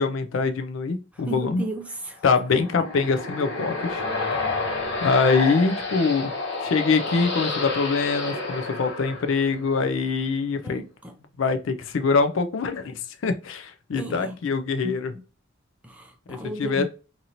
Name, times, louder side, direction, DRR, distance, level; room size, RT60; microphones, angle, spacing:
voice 1, 0.0-1.6 2.2-4.1 5.0-6.3 6.6-10.8 11.4-15.1 16.3-16.9, left 4 dB, 75° left, 0.4 m, -24 dB
voice 2, 1.1-2.2 2.5-2.6 10.6-11.1 13.9-14.4 14.8-15.0 15.8-16.9, right 1 dB, 5° right, 0.4 m, -35 dB
sound 1, 2.2-9.8, left 3 dB, 60° left, 1.1 m, -30 dB
2.7 x 2.6 x 2.8 m
head